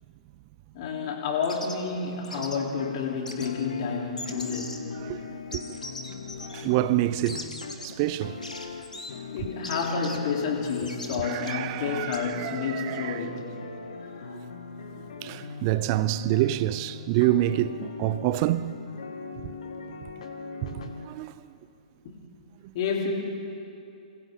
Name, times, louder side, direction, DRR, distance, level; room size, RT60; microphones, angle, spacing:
voice 1, 0.7-4.9 9.3-13.7 14.0-14.4 22.0-22.1 22.7-23.1, left 5 dB, 45° left, 4.0 m, -30 dB
sound 1, 1.3-12.2, left 2 dB, 80° left, 2.3 m, -42 dB
sound 2, 2.4-21.1, left 5 dB, 60° left, 2.4 m, -40 dB
voice 2, 5.0-5.6 6.5-7.5 7.8-8.4 11.2-13.2 15.2-18.7 21.0-21.3, right 15 dB, 35° right, 0.7 m, -27 dB
28.0 x 27.0 x 4.0 m
figure-of-eight pair, 115°, 4 cm